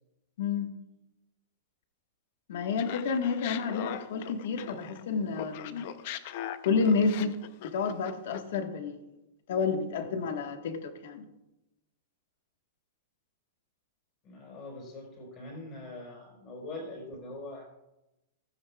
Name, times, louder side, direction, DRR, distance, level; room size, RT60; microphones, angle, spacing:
voice 1, 0.4-0.7 2.5-5.9 6.6-9.0 9.5-11.3, left 5 dB, 60° left, 6 dB, 1.4 m, -30 dB
Laughter, 2.8-5.0 5.3-8.6, left 11 dB, 45° left, 0.6 m, -40 dB
voice 2, 14.2-17.7, left 2 dB, 25° left, -1 dB, 4.3 m, -43 dB
15.5 x 14.0 x 2.3 m, 0.93 s
supercardioid pair, 175°, 0 cm